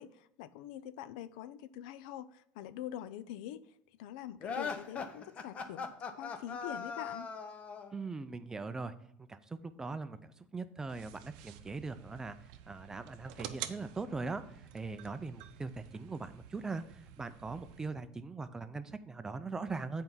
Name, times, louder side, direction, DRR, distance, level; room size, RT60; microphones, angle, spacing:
voice 1, 0.0-3.6 4.0-5.9 6.2-7.3, left 11 dB, 85° left, 0.4 m, -44 dB
sound 1, 4.4-8.0, left 5 dB, 30° left, 0.7 m, -40 dB
voice 2, 7.9-8.9 9.3-12.4 12.7-14.4 14.7-20.0, right 3 dB, 15° right, 0.4 m, -40 dB
sound 2, 10.9-17.9, right 11 dB, 80° right, 0.6 m, -49 dB
7.6 x 4.6 x 5.5 m
cardioid pair, 135°, 4 cm